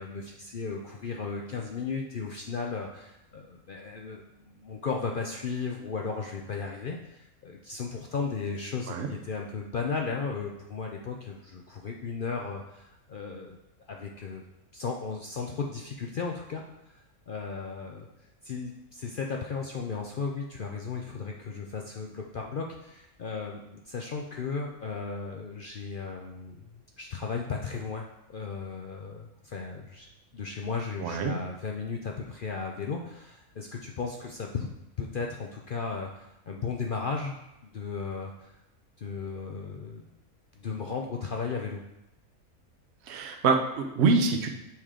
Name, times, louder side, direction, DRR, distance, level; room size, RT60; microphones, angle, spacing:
voice 1, 0.0-13.6 13.9-14.4 14.7-18.1 18.4-34.7 35.0-38.6 39.0-40.1 40.6-41.8, left 5 dB, 60° left, 1 dB, 0.5 m, -35 dB
voice 2, 31.0-31.3 43.1-44.5, right 4 dB, 55° right, 4 dB, 0.9 m, -25 dB
7.1 x 4.9 x 3.7 m, 0.87 s
omnidirectional pair, 1.5 m